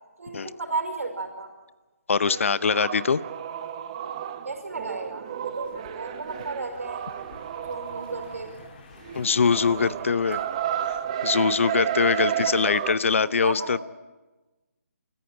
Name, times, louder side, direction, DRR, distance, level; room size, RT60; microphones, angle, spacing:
voice 1, 0.2-1.5 4.4-7.0 7.6-8.6 10.1-10.2 12.3-12.5 13.0-13.8, right 3 dB, 70° right, 6 dB, 5.0 m, -34 dB
voice 2, 2.1-3.2 9.1-10.4 11.2-13.8, left 5 dB, 60° left, 18 dB, 0.7 m, -23 dB
sound 1, 2.2-8.7 9.0-13.0, right 10 dB, 25° right, 0.9 m, -32 dB
Car passing by, 5.6-13.1, left 4 dB, 40° left, 2.4 m, -51 dB
24.0 x 14.0 x 9.3 m, 1.1 s
hypercardioid pair, 165°, 8 cm